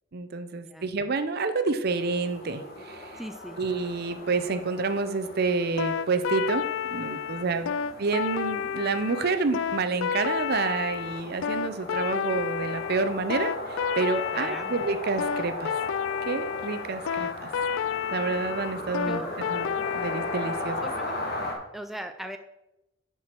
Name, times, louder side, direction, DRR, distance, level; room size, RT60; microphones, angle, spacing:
voice 1, 0.1-3.2 3.6-6.6 6.9-7.7 8.0-15.7 16.3-17.5 18.1-19.2 19.5-19.7 19.9-20.8, right 4 dB, 55° right, 10 dB, 0.6 m, -28 dB
sound 1, 1.9-21.5, left 1 dB, 55° left, 1.3 m, -38 dB
voice 2, 3.2-3.6 7.6-7.8 14.3-14.7 19.1-19.3 20.8-21.2 21.7-22.4, equal, ahead, 6 dB, 0.4 m, -38 dB
sound 2, 5.8-20.6, left 8 dB, 80° left, 0.3 m, -30 dB
10.0 x 4.7 x 4.6 m, 0.90 s
head